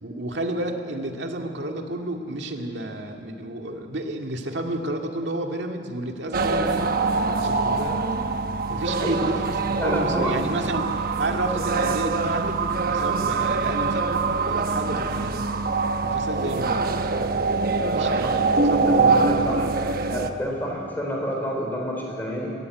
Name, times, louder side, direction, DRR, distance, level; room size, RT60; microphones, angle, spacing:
voice 1, 0.0-8.0 8.7-10.9 11.2-12.6 12.8-15.4 16.0-16.8 17.9-19.5, right 1 dB, 70° right, 3 dB, 2.1 m, -31 dB
sound 1, 6.3-20.3, right 4 dB, 55° right, 1.0 m, -24 dB
voice 2, 9.8-10.4 18.0-18.4 18.7-18.9 19.2-19.7 20.1-22.5, equal, 10° left, -1 dB, 4.2 m, -29 dB
23.0 x 14.5 x 9.7 m, 2.5 s
head